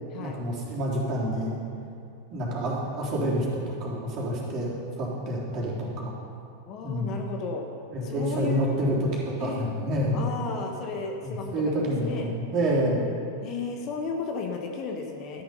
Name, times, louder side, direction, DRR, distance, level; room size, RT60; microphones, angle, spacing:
voice 1, 0.2-1.6 2.3-4.7 5.0-6.1 6.8-7.2 7.9-10.2 11.2-13.1, equal, 35° right, -4 dB, 3.5 m, -28 dB
voice 2, 6.7-7.6 8.0-8.7 9.4-9.7 10.1-11.5 12.0-12.3 13.4-15.4, left 4 dB, 35° left, 3 dB, 1.4 m, -34 dB
13.0 x 10.5 x 5.4 m, 2.6 s
figure-of-eight pair, 90°, 0 cm